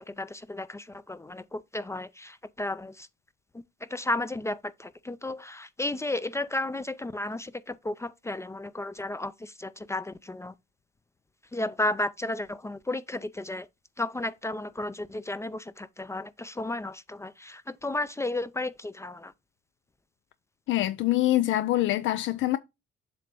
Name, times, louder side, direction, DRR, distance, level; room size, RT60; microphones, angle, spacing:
voice 1, 0.0-3.1 3.5-3.6 3.9-10.5 11.5-13.7 14.0-19.3, left 2 dB, 15° left, 0.4 m, -33 dB
voice 2, 20.7-22.6, left 15 dB, 75° left, 0.4 m, -25 dB
7.6 x 2.9 x 5.3 m
cardioid pair, 90°, 20 cm